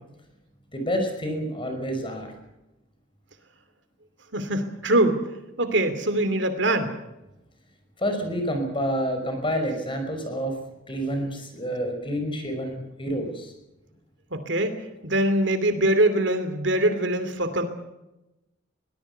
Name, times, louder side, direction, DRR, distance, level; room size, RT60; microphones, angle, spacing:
voice 1, 0.7-2.3 8.0-10.5 10.9-13.5, equal, 25° left, 5 dB, 5.5 m, -28 dB
voice 2, 4.3-5.2 5.6-6.9 14.3-14.8 15.0-17.6, right 1 dB, 65° right, 9 dB, 2.8 m, -23 dB
23.0 x 19.0 x 6.8 m, 0.94 s
head